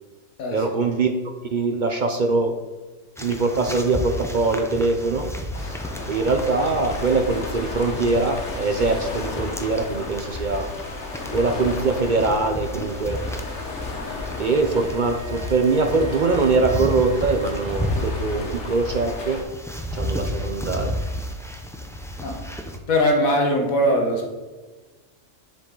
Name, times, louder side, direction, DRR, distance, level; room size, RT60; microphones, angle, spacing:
voice 1, 0.5-2.6 3.2-5.3 5.6-5.8 6.1-10.7 11.3-13.2 14.4-19.4 19.9-21.0, right 3 dB, 55° right, 5 dB, 0.5 m, -22 dB
sound 1, 3.2-22.8, left 1 dB, 5° left, 0.3 m, -33 dB
sound 2, 5.5-19.4, left 3 dB, 55° left, 1.2 m, -34 dB
sound 3, 13.3-18.6 18.9-19.0, left 4 dB, 25° left, 1.7 m, -43 dB
voice 2, 22.9-24.3, equal, 85° left, 1 dB, 1.7 m, -20 dB
7.6 x 7.0 x 3.8 m, 1.2 s
omnidirectional pair, 1.4 m